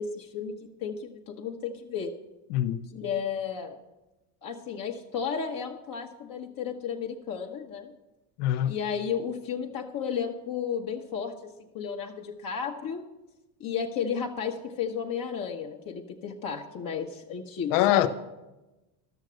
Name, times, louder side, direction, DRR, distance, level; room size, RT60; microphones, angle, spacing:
voice 1, 0.0-2.2 2.9-3.8 4.4-7.9 8.7-13.1 13.6-18.1, left 7 dB, 50° left, 1.2 m, -33 dB
voice 2, 2.5-2.8 8.4-8.7 17.7-18.1, left 13 dB, 80° left, 0.8 m, -23 dB
13.0 x 6.6 x 6.3 m
supercardioid pair, 95°, 45 cm